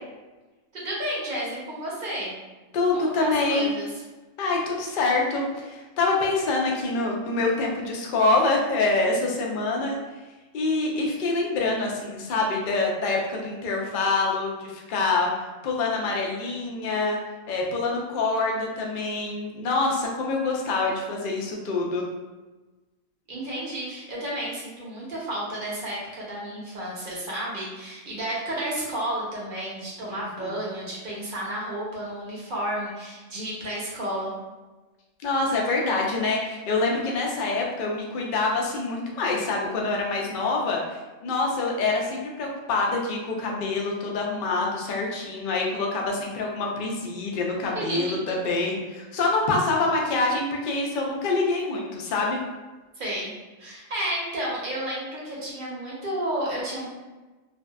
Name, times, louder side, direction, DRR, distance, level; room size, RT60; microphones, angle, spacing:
voice 1, 0.7-2.3 2.9-3.9 23.3-34.3 47.6-48.0 52.9-53.3 53.6-56.8, right 1 dB, 50° right, -5 dB, 0.7 m, -32 dB
voice 2, 2.7-3.7 4.4-10.0 10.5-15.3 15.6-17.2 17.5-22.0 30.1-30.5 35.2-52.4, left 3 dB, 65° left, -1 dB, 0.5 m, -26 dB
2.5 x 2.3 x 2.2 m, 1.2 s
omnidirectional pair, 1.4 m